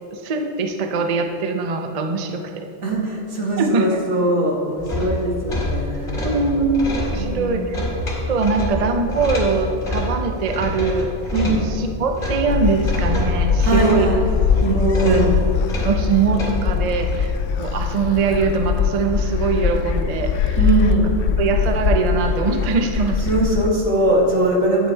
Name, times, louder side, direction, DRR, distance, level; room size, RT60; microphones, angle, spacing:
voice 1, 0.1-2.7 3.6-4.0 6.2-6.9 7.1-7.8 8.3-11.1 11.7-14.1 15.0-15.3 15.8-20.6 20.9-21.0 21.4-23.3, right 4 dB, 40° right, 5 dB, 0.6 m, -22 dB
voice 2, 2.8-6.3 7.1-7.7 11.3-11.6 13.6-14.2 14.6-15.3 20.6-21.1 23.3-24.9, right 2 dB, 80° right, -1 dB, 1.9 m, -21 dB
sound 1, 4.8-17.3, left 1 dB, 25° left, 1.9 m, -27 dB
Gull seagull, 12.5-23.7, left 6 dB, 70° left, 0.8 m, -22 dB
9.4 x 8.3 x 4.4 m, 2.7 s
omnidirectional pair, 1.2 m